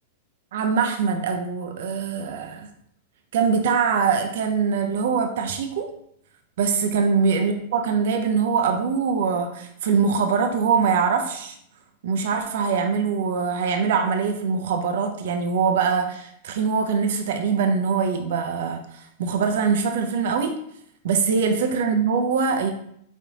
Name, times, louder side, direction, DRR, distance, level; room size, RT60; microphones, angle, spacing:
voice 1, 0.5-2.7 3.3-5.9 6.6-11.6 12.0-20.6 21.0-22.7, right 5 dB, 60° right, 6 dB, 0.4 m, -23 dB
5.2 x 2.5 x 2.7 m, 0.70 s
figure-of-eight pair, 95°, 0 cm